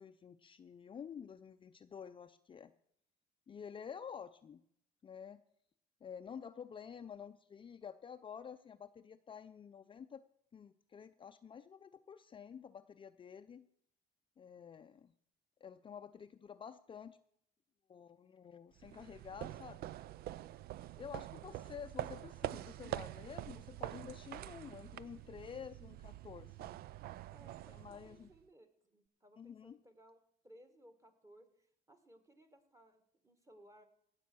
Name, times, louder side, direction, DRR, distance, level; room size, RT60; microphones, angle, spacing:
voice 1, 0.0-2.7 3.5-4.6 5.0-5.4 6.0-10.2 10.5-13.7 14.4-15.1 15.6-17.2 17.9-19.9 21.0-26.7 27.7-28.3 29.4-29.8, left 7 dB, 30° left, 9 dB, 0.5 m, -50 dB
sound 1, 18.8-28.4, right 14 dB, 65° right, 0.4 m, -46 dB
voice 2, 21.1-21.8 27.3-33.9, equal, 20° right, 7 dB, 1.8 m, -63 dB
16.5 x 7.5 x 6.2 m, 0.70 s
cardioid pair, 110°, 17 cm